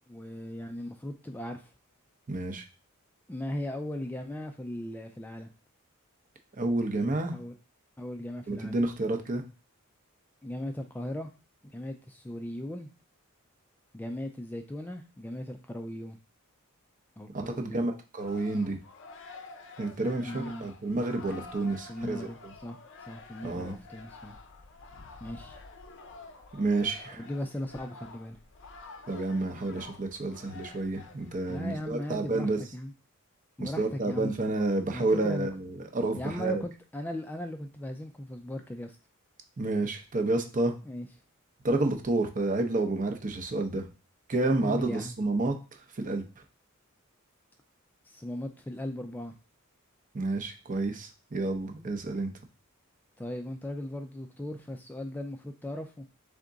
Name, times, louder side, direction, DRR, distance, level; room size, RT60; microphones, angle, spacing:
voice 1, 0.1-1.7 3.3-5.5 7.3-7.5 8.0-8.8 10.4-11.3 11.7-12.9 13.9-16.2 17.2-17.9 20.2-20.7 21.9-22.8 23.1-24.4 25.2-25.6 27.1-28.4 31.5-32.9 33.6-34.3 34.9-35.5 36.1-39.0 40.9-41.1 44.6-45.2 48.1-49.3 53.2-56.1, left 1 dB, 10° left, 5 dB, 0.3 m, -38 dB
voice 2, 2.3-2.6 6.6-7.3 8.5-9.4 17.3-18.8 19.8-22.5 23.4-23.8 26.5-27.2 29.1-32.6 33.6-36.6 39.6-40.7 41.6-43.9 44.3-45.6 45.9-46.2 50.1-52.3, right 2 dB, 40° right, 5 dB, 0.7 m, -30 dB
sound 1, 18.2-31.7, left 3 dB, 60° left, 0.6 m, -49 dB
3.6 x 3.6 x 3.9 m, 0.33 s
head